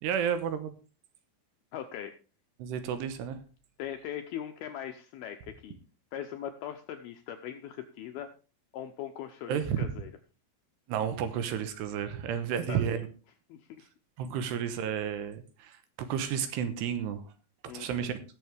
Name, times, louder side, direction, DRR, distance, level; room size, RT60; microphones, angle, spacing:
voice 1, 0.0-0.8 2.6-3.4 9.5-9.9 10.9-13.0 14.2-17.3 17.6-18.2, right 8 dB, 80° right, 10 dB, 2.9 m, -32 dB
voice 2, 1.7-2.1 3.8-5.8 6.1-8.3 8.7-10.1 12.5-13.1 13.5-13.9 17.7-18.1, left 10 dB, 80° left, 6 dB, 2.2 m, -40 dB
19.5 x 7.1 x 3.4 m, 0.34 s
omnidirectional pair, 5.2 m